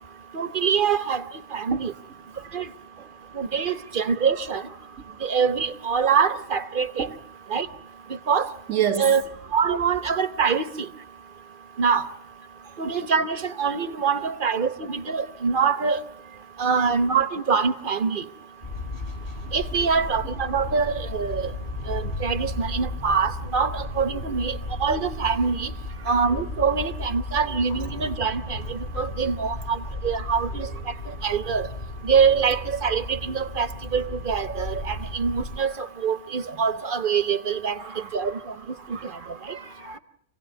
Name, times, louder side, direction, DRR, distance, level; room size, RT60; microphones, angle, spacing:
voice 1, 0.3-1.2 1.5-1.9 2.5-2.6 3.3-4.6 5.2-7.1 7.5-7.7 8.3-8.5 9.0-9.2 9.5-10.9 11.8-12.0 12.8-16.0 16.6-18.2 19.5-21.4 21.9-25.7 26.1-30.7 31.2-31.7 32.0-35.7 36.0-37.8 38.1-38.4, right 6 dB, 45° right, 1.1 m, -24 dB
voice 2, 8.7-9.1 37.8-38.3 38.9-40.0, right 9 dB, 80° right, 1.8 m, -30 dB
sound 1, 18.6-35.6, left 2 dB, 50° left, 4.2 m, -34 dB
27.0 x 17.0 x 8.2 m
omnidirectional pair, 1.3 m